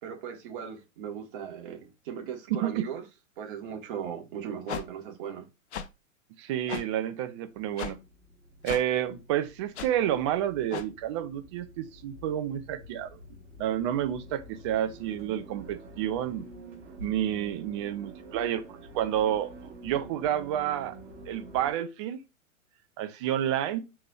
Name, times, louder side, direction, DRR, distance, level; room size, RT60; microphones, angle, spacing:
voice 1, 0.0-3.0 3.4-5.5, right 8 dB, 40° right, 1.5 m, -38 dB
voice 2, 2.5-2.9 6.4-8.0 8.6-13.2 13.6-16.5 17.0-19.5 19.8-21.0 21.3-22.2 23.0-23.8, right 11 dB, 25° right, 0.4 m, -30 dB
sound 1, 4.7-4.8 5.7-5.9 6.7-6.8 7.8-7.9 8.6-8.8 9.7-9.9 10.7-10.9, left 8 dB, 55° left, 0.6 m, -35 dB
sound 2, 7.8-21.7, right 1 dB, 60° right, 2.7 m, -48 dB
4.7 x 4.0 x 2.4 m
figure-of-eight pair, 105°, 40 cm